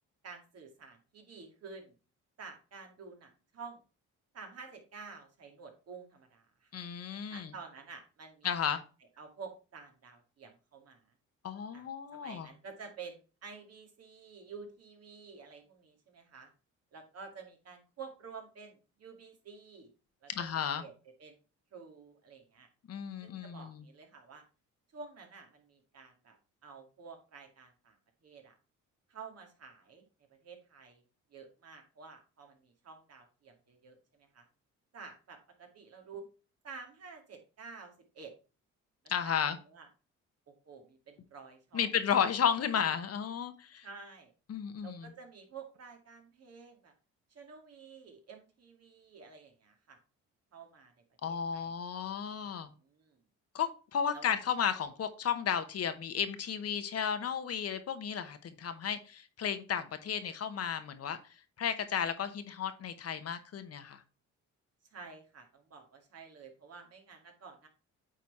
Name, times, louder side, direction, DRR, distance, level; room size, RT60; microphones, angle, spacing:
voice 1, 0.2-1.9 2.4-3.8 4.3-6.7 7.3-8.8 9.2-11.0 11.7-11.9 12.1-16.5 16.9-19.9 20.2-20.5 20.8-20.9 21.2-21.4 21.7-22.7 23.2-24.4 24.9-26.4 26.6-28.0 28.2-28.6 29.1-30.0 30.4-31.0 31.3-34.5 34.9-36.3 36.6-38.3 39.2-39.9 40.5-41.9 43.8-44.3 44.8-46.9 47.3-50.0 50.5-51.7 52.6-53.2 54.1-54.3 64.9-67.7, right 5 dB, 55° right, 3 dB, 2.2 m, -50 dB
voice 2, 6.7-7.5 8.4-8.8 11.4-12.5 20.3-20.8 22.9-23.8 39.1-39.6 41.7-43.9 44.5-45.1 51.2-52.7 53.5-61.2 61.6-64.0, left 8 dB, 55° left, 10 dB, 1.0 m, -33 dB
8.6 x 4.1 x 4.2 m, 0.33 s
cardioid pair, 90°, 30 cm